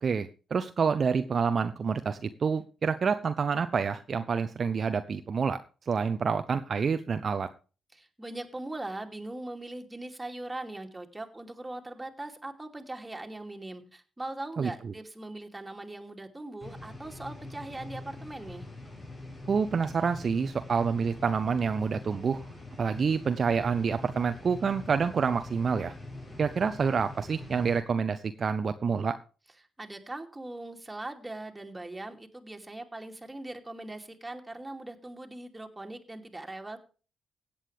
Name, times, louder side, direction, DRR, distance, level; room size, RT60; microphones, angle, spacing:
voice 1, 0.0-5.6 5.8-7.5 14.6-14.7 19.5-22.4 22.8-25.9 26.4-29.2, right 5 dB, 50° right, 10 dB, 0.7 m, -28 dB
voice 2, 7.9-18.7 29.8-36.8, right 2 dB, 20° right, 4 dB, 2.6 m, -40 dB
sound 1, 16.6-27.8, left 2 dB, 35° left, 6.4 m, -44 dB
16.5 x 8.6 x 3.3 m, 0.35 s
hypercardioid pair, 40°, 0 cm